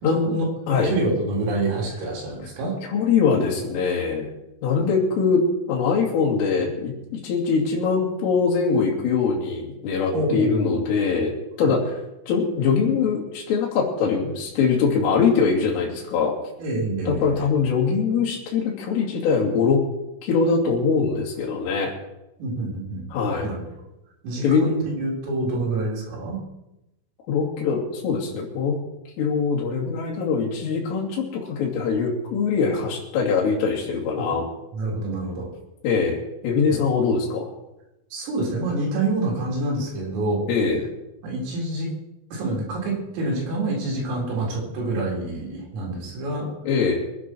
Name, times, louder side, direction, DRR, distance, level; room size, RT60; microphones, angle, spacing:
voice 1, 0.0-2.8 10.1-10.8 11.6-11.7 16.6-17.5 22.4-23.6 24.2-26.4 34.2-34.3 34.7-35.5 36.7-36.8 38.1-40.5 41.2-41.9 42.3-46.5, right 2 dB, 85° right, -3 dB, 6.7 m, -27 dB
voice 2, 2.8-4.3 4.6-5.4 5.7-11.8 12.3-16.4 17.1-19.8 20.2-21.9 23.1-23.5 24.4-24.7 27.3-28.8 29.2-34.5 35.8-36.2 36.4-37.5 40.5-40.9 46.7-47.0, left 5 dB, 75° left, -4 dB, 5.2 m, -22 dB
24.0 x 10.0 x 4.6 m, 0.91 s
omnidirectional pair, 5.8 m